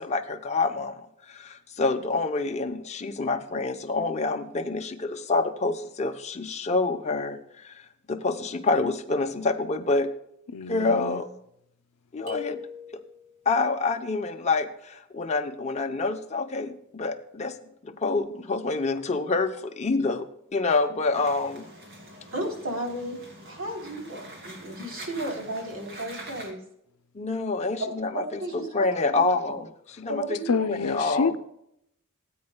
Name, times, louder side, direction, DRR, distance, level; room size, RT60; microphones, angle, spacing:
voice 1, 0.0-10.1 10.7-11.3 12.1-12.6 12.9-13.0 13.5-17.5 17.8-21.7 27.1-31.4, left 3 dB, 30° left, 4 dB, 0.7 m, -27 dB
voice 2, 10.5-11.2 30.5-31.4, left 5 dB, 90° left, 13 dB, 0.6 m, -27 dB
sound 1, 12.3-13.4, left 6 dB, 85° right, 4.5 m, -38 dB
sound 2, 21.1-26.5, right 1 dB, 45° right, 2.8 m, -45 dB
voice 3, 22.3-23.2 23.4-26.6 28.1-28.9 29.1-29.3 30.1-30.7, right 1 dB, 65° right, 0 dB, 3.2 m, -34 dB
17.5 x 8.7 x 2.2 m, 0.75 s
head